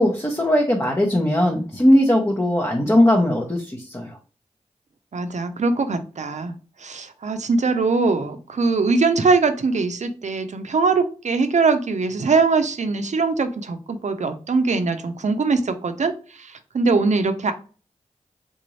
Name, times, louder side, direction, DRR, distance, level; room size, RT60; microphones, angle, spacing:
voice 1, 0.0-4.2, left 1 dB, 20° left, -1 dB, 0.9 m, -19 dB
voice 2, 5.1-6.5 6.8-16.1 16.7-17.5, right 4 dB, 65° right, 8 dB, 0.6 m, -21 dB
3.8 x 2.6 x 3.1 m, 0.38 s
cardioid pair, 40°, 13 cm